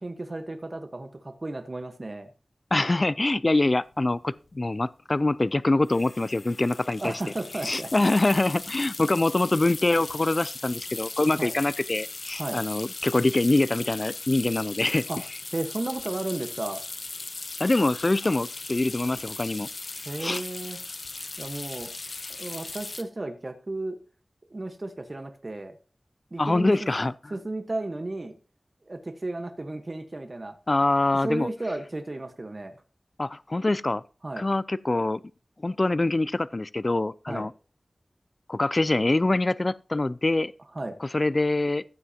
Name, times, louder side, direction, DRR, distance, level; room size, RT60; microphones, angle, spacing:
voice 1, 0.0-2.3 7.0-7.9 11.4-11.5 12.3-12.6 15.1-15.2 15.5-16.8 20.0-20.8 21.4-21.9 22.4-24.0 24.5-25.7 26.3-26.9 27.3-28.4 28.8-30.6 31.2-32.8 34.2-34.4 37.3-37.5 40.7-41.0, right 2 dB, 50° right, 1.3 m, -34 dB
voice 2, 2.7-7.1 7.6-15.0 17.6-19.7 20.2-20.4 26.4-27.1 30.7-31.5 33.2-34.0 34.4-35.2 35.6-37.5 38.5-40.5 41.0-41.8, left 2 dB, 45° left, 0.4 m, -24 dB
sound 1, 3.9-4.0 4.2-4.5 5.9-23.0, left 3 dB, 75° left, 1.0 m, -38 dB
14.5 x 7.9 x 2.9 m
cardioid pair, 40°, 0 cm